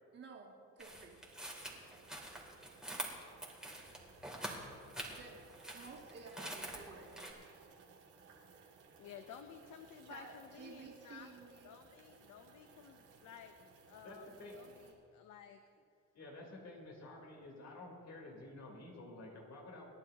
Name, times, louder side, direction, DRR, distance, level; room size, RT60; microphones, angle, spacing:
voice 1, 0.1-1.2 5.0-5.4 5.7-7.4 10.1-11.7, right 4 dB, 50° right, -5 dB, 3.3 m, -53 dB
sound 1, 0.8-7.3, right 1 dB, ahead, 2.9 m, -46 dB
sound 2, 1.1-14.9, right 5 dB, 85° right, 2.8 m, -62 dB
voice 2, 9.0-11.4 11.6-13.6 13.8-14.3 14.6-15.6, left 8 dB, 80° left, 7 dB, 0.8 m, -54 dB
voice 3, 14.0-14.6 16.1-19.9, left 2 dB, 60° left, -1 dB, 3.8 m, -51 dB
28.5 x 10.5 x 2.9 m, 2.5 s
cardioid pair, 90°, 30 cm